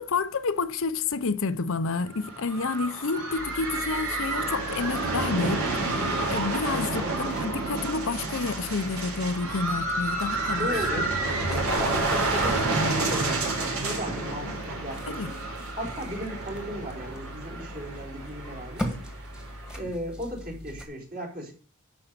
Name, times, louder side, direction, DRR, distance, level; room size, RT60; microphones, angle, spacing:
voice 1, 0.0-5.7 6.3-10.7 10.9-11.1 11.5-11.7 15.1-15.3, left 4 dB, 65° left, 0.7 m, -29 dB
sound 1, 2.1-19.8, right 2 dB, 65° right, 4.6 m, -30 dB
sound 2, 3.4-20.8, equal, 5° right, 1.8 m, -41 dB
voice 2, 6.7-7.2 10.6-11.1 11.8-15.4 15.8-19.2 19.7-21.5, equal, 40° right, 4.3 m, -36 dB
11.5 x 5.4 x 6.9 m
head